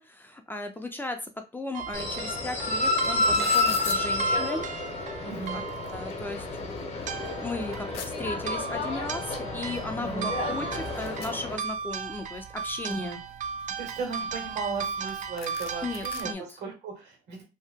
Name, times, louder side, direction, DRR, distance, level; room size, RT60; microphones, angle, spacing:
voice 1, 0.0-4.7 5.1-5.2 5.5-5.6 5.9-7.9 8.2-13.2 15.8-16.6, left 2 dB, 10° left, 5 dB, 0.4 m, -36 dB
sound 1, 1.7-16.3, right 6 dB, 45° right, 0.4 m, -37 dB
sound 2, 1.9-11.6, left 2 dB, 40° left, 0.8 m, -30 dB
sound 3, 2.5-2.6 2.8-4.0 4.9-5.0 5.3-6.1 6.6-6.7 7.0-8.1 9.3-9.4 9.7-9.8 10.1-12.0 12.4-13.1 13.6-14.8 15.1-15.2 15.4-16.2, left 8 dB, 65° left, 0.5 m, -41 dB
voice 2, 5.2-5.6 10.0-10.3 12.9-13.2 13.8-17.4, right 4 dB, 80° right, 1 dB, 1.5 m, -36 dB
2.8 x 2.1 x 3.4 m, 0.28 s
cardioid pair, 110°, 17 cm